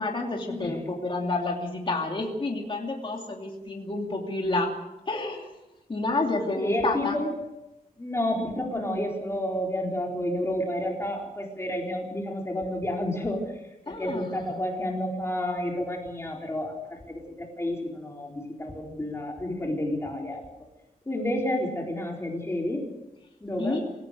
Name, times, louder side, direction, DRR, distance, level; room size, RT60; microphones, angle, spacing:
voice 1, 0.0-4.7 5.1-5.5 5.9-7.2 13.9-14.5 23.6-23.9, left 2 dB, 35° left, 0 dB, 2.8 m, -29 dB
voice 2, 6.6-7.4 8.0-13.4 13.9-20.5 21.1-22.9 23.4-23.8, left 1 dB, 15° left, 0 dB, 4.0 m, -30 dB
26.5 x 16.5 x 6.6 m, 0.95 s
wide cardioid pair, 170°, 15 cm